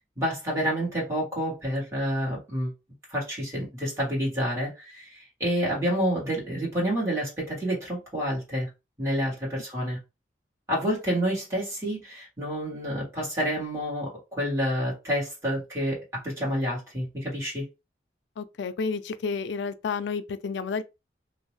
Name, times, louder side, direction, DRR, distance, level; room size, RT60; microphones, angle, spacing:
voice 1, 0.2-2.7 3.1-8.7 9.0-10.0 10.7-17.7, equal, 15° right, 1.3 m, -29 dB
voice 2, 18.4-20.8, left 5 dB, 80° left, 0.3 m, -31 dB
2.6 x 2.0 x 3.1 m
head